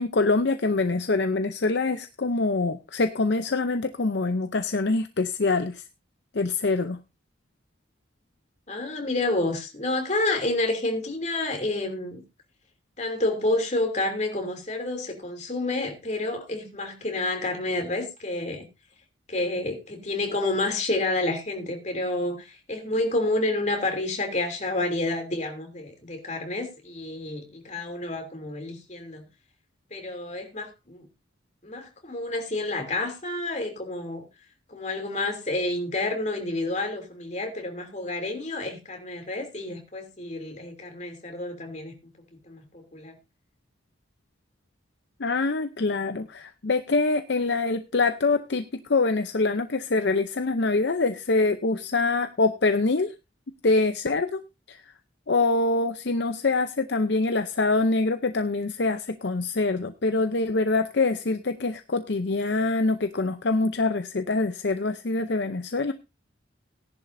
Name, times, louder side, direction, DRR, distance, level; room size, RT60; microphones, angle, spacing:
voice 1, 0.0-5.8 6.3-7.0 45.2-48.6 48.9-53.1 53.6-54.4 54.7-54.9 55.3-65.9, left 3 dB, 60° left, 0.7 m, -25 dB
voice 2, 8.7-12.2 13.0-18.7 19.3-29.2 29.9-31.1 31.6-34.2 34.7-42.0 42.5-43.1, left 2 dB, 35° left, 3.0 m, -29 dB
17.5 x 11.0 x 2.7 m
head